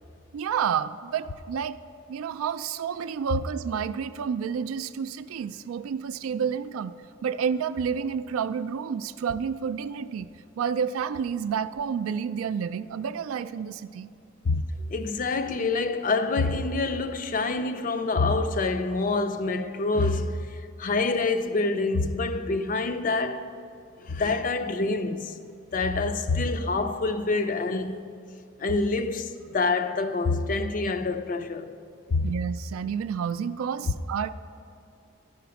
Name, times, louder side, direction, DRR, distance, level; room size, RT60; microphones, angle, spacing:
voice 1, 0.3-1.8 2.1-6.9 7.2-10.3 10.6-14.1 32.2-34.3, right 7 dB, 85° right, 0.3 m, -30 dB
voice 2, 14.9-23.5 24.0-25.4 25.7-28.0 28.6-31.7 32.1-32.3, left 3 dB, 40° left, 0.4 m, -26 dB
12.0 x 5.1 x 5.8 m
head